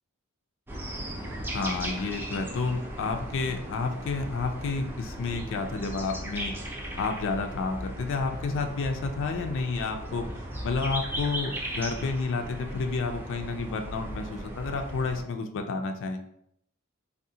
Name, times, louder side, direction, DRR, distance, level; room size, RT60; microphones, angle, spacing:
sound 1, 0.7-15.2, right 1 dB, 10° right, 0.4 m, -37 dB
voice 1, 1.5-6.5 7.0-10.3 10.6-16.2, left 4 dB, 60° left, 5 dB, 0.3 m, -30 dB
3.6 x 2.0 x 2.7 m, 0.73 s
head